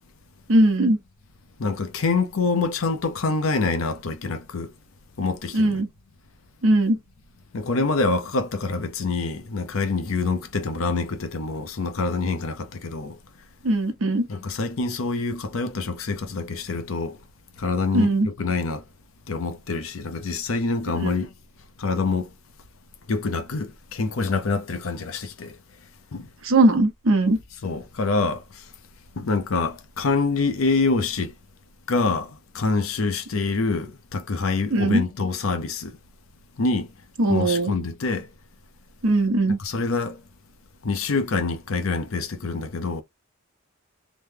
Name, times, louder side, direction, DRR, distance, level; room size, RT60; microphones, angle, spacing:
voice 1, 0.5-1.0 5.5-5.9 6.6-7.0 13.6-14.3 17.9-18.3 21.0-21.1 26.4-27.4 34.7-35.0 37.2-37.7 39.0-39.6, right 2 dB, 70° right, 0.9 m, -19 dB
voice 2, 1.6-4.7 5.2-5.8 7.5-13.2 14.3-17.2 17.6-18.8 19.3-21.3 21.8-22.3 23.1-25.5 26.1-26.3 27.6-28.6 29.2-31.3 31.9-36.0 36.6-36.9 37.3-38.3 39.6-40.2 40.8-43.0, left 3 dB, 70° left, 0.6 m, -26 dB
3.1 x 2.1 x 3.4 m
head